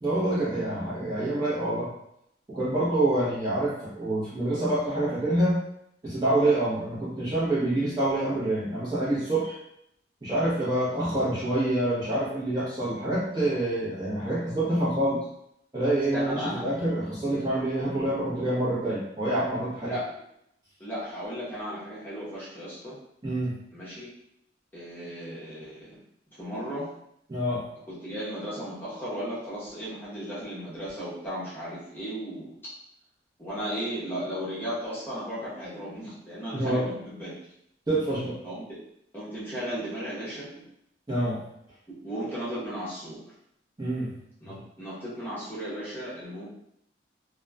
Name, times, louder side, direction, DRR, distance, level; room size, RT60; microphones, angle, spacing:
voice 1, 0.0-1.9 2.5-5.6 6.0-9.6 10.2-15.2 15.7-20.0 23.2-23.5 27.3-27.6 36.5-36.9 37.9-38.4 41.1-41.4 43.8-44.1 44.4-44.6, right 1 dB, 20° right, -9 dB, 0.7 m, -26 dB
voice 2, 16.1-16.6 19.8-20.1 20.8-23.0 23.7-24.1 24.7-26.0 26.3-26.9 27.9-32.6 33.4-37.3 38.4-38.7 39.1-40.7 42.0-43.2 44.4-46.5, equal, 10° left, -10 dB, 0.8 m, -35 dB
2.9 x 2.1 x 2.3 m, 0.77 s
head